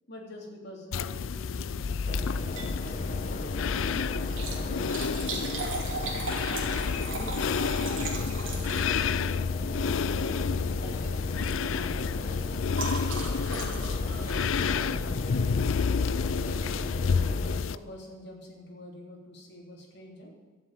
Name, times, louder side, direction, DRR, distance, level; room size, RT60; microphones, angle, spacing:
voice 1, 0.1-3.6 4.4-5.8 7.1-7.4 7.7-8.6 9.7-10.4 10.7-11.2 11.6-12.7 13.4-15.7 16.1-16.8 17.6-20.3, left 1 dB, 55° left, -1 dB, 3.2 m, -46 dB
sound 1, 0.9-17.7, left 6 dB, 75° left, 0.4 m, -30 dB
sound 2, 2.1-17.6, left 1 dB, 40° left, 1.0 m, -36 dB
Liquid, 2.5-2.8 3.2-3.3 4.2-9.3 10.3-10.6 10.9-11.2 11.4-15.5 16.5-16.7 17.3-17.4 17.5-17.6, right 3 dB, 75° right, 3.1 m, -38 dB
13.0 x 7.5 x 9.0 m, 1.3 s
head